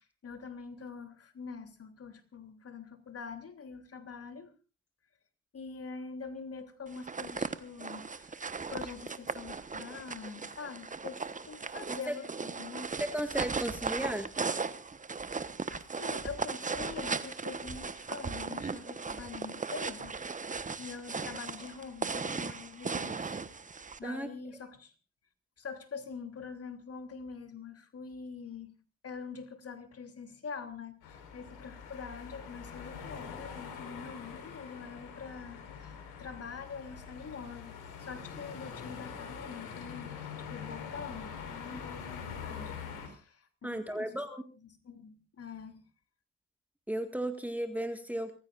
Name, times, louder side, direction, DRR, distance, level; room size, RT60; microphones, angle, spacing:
voice 1, 0.0-4.5 5.5-12.9 15.1-23.4 23.8-24.9 25.6-28.7 29.0-42.7 43.0-44.1 44.6-45.8, left 5 dB, 40° left, 6 dB, 3.3 m, -45 dB
sound 1, 6.9-24.0, right 4 dB, 20° right, 1.3 m, -37 dB
voice 2, 13.1-14.3 20.6-20.7 24.0-24.3 43.6-44.4 46.9-48.3, right 1 dB, 5° right, 7 dB, 1.9 m, -35 dB
sound 2, 31.0-43.1, left 6 dB, 65° left, 4.9 m, -44 dB
29.5 x 15.0 x 2.6 m, 0.34 s
hypercardioid pair, 60°, 38 cm